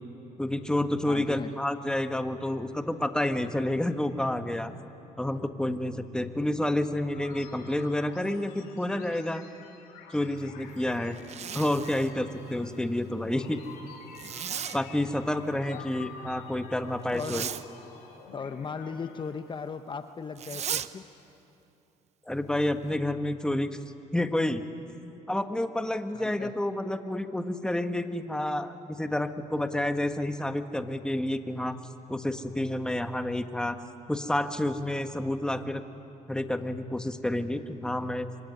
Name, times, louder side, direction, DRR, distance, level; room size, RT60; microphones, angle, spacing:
voice 1, 0.4-4.7 5.2-9.4 10.1-11.2 11.5-13.6 14.7-17.5 22.3-23.7 24.1-24.7 25.3-31.8 32.1-33.8 34.1-35.8 36.3-38.3, left 1 dB, 5° left, 8 dB, 1.6 m, -29 dB
voice 2, 1.0-1.5 11.5-11.7 15.7-15.9 17.1-17.6 18.3-21.1 26.1-26.6, left 5 dB, 35° left, 9 dB, 1.0 m, -37 dB
sound 1, 7.1-19.4, left 5 dB, 85° left, 4.1 m, -49 dB
Zipper (clothing), 11.1-12.1 14.1-14.8 17.1-17.6 20.3-20.9, right 9 dB, 50° right, 0.9 m, -35 dB
25.0 x 24.0 x 9.7 m, 2.8 s
supercardioid pair, 80°, 14 cm